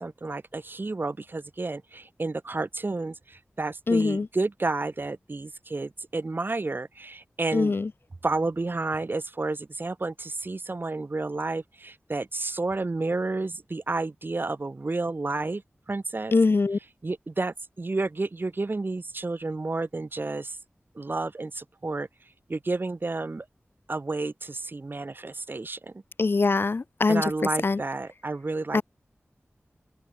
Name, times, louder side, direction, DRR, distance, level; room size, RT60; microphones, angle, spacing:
voice 1, 0.0-7.7 8.2-15.6 15.9-16.3 17.0-20.5 20.9-22.1 22.5-23.4 23.9-25.8 27.1-28.8, right 3 dB, 50° right, 1.6 m, -31 dB
voice 2, 3.9-4.3 7.5-7.9 16.3-16.8 26.2-27.2 27.6-27.8 28.7-28.8, left 3 dB, 55° left, 0.5 m, -22 dB
open air
wide cardioid pair, 70°, 5 cm